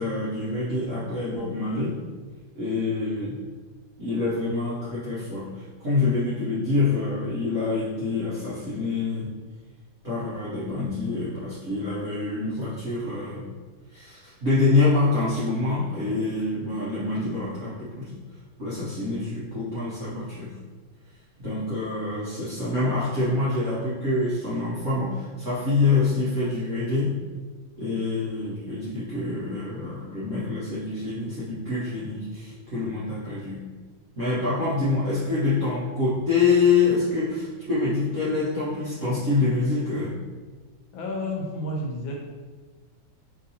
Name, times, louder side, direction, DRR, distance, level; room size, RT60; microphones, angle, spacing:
voice 1, 0.0-2.0 2.5-3.4 4.0-9.3 10.0-13.4 13.9-18.1 18.6-20.5 21.4-27.1 27.8-33.6 34.2-40.2, left 3 dB, 50° right, -10 dB, 1.0 m, -26 dB
voice 2, 40.9-42.2, left 1 dB, 80° left, -1 dB, 1.5 m, -30 dB
5.4 x 2.6 x 2.8 m, 1.4 s
omnidirectional pair, 2.2 m